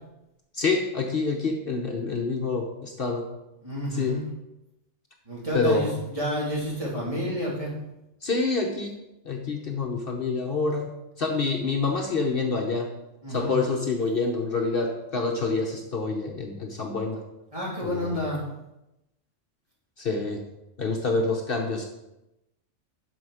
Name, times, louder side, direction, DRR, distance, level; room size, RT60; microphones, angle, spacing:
voice 1, 0.5-3.3 3.9-4.2 5.5-5.9 8.2-10.9 11.2-12.9 13.3-17.2 17.8-18.1 20.0-20.5 20.8-21.9, left 3 dB, 55° left, 2 dB, 1.0 m, -27 dB
voice 2, 3.6-4.2 5.2-7.8 9.6-9.9 13.2-13.5 17.5-18.4, equal, 30° right, -6 dB, 3.3 m, -30 dB
12.5 x 5.0 x 4.8 m, 0.91 s
omnidirectional pair, 1.2 m